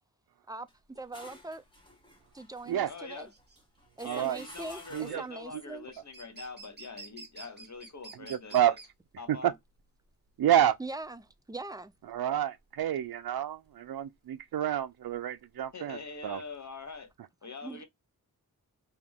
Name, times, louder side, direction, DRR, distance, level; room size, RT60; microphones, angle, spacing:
sound 1, 0.7-5.4, left 1 dB, 15° left, 1.6 m, -54 dB
sound 2, 0.8-17.1, right 3 dB, 30° right, 1.3 m, -53 dB
voice 1, 1.0-1.6 2.3-3.3 4.0-5.9 10.8-11.9 17.6-17.8, right 2 dB, 10° right, 0.5 m, -41 dB
voice 2, 2.9-3.3 4.0-8.8 9.2-9.6 15.7-17.1 17.4-17.8, left 4 dB, 50° left, 1.1 m, -44 dB
voice 3, 4.0-4.4 4.9-5.2 8.5-8.7 9.4-9.5 10.4-10.7 12.1-16.0 16.2-16.4, right 11 dB, 80° right, 0.5 m, -28 dB
3.6 x 2.8 x 3.5 m
wide cardioid pair, 65°, 36 cm